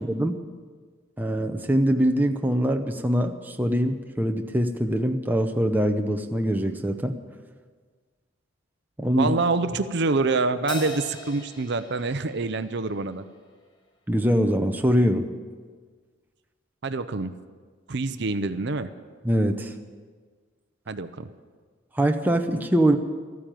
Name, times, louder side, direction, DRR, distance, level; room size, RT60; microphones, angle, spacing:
voice 1, 0.1-0.4 1.2-7.2 9.0-9.3 14.1-15.3 19.2-19.7 21.9-23.0, equal, 10° right, 5 dB, 0.7 m, -23 dB
voice 2, 9.1-13.2 16.8-17.3 17.9-18.9 20.9-21.3, right 3 dB, 55° right, 11 dB, 0.6 m, -26 dB
Crash cymbal, 10.7-13.4, left 2 dB, 20° left, 1.2 m, -40 dB
14.0 x 9.5 x 9.0 m, 1.5 s
head